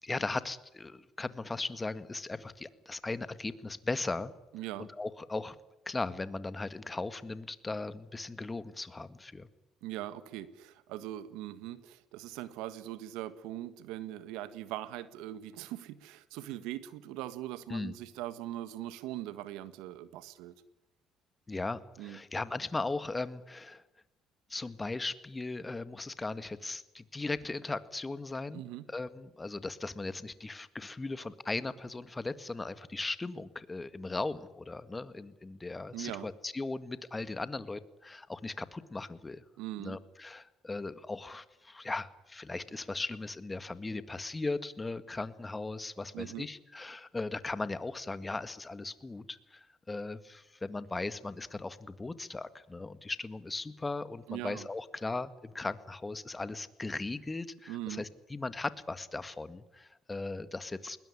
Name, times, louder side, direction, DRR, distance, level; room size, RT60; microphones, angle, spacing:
voice 1, 0.0-4.3 4.8-5.6 5.9-9.5 17.7-17.9 21.5-23.8 24.5-28.6 28.9-39.4 39.8-61.0, left 3 dB, 20° left, 13 dB, 1.8 m, -38 dB
voice 2, 4.5-4.9 9.8-20.5 22.0-22.2 28.5-28.8 35.9-36.3 39.6-40.0 46.1-46.5 54.3-54.7 57.7-58.0, right 14 dB, 85° right, 14 dB, 1.6 m, -41 dB
21.0 x 20.0 x 10.0 m, 0.93 s
supercardioid pair, 75°, 0 cm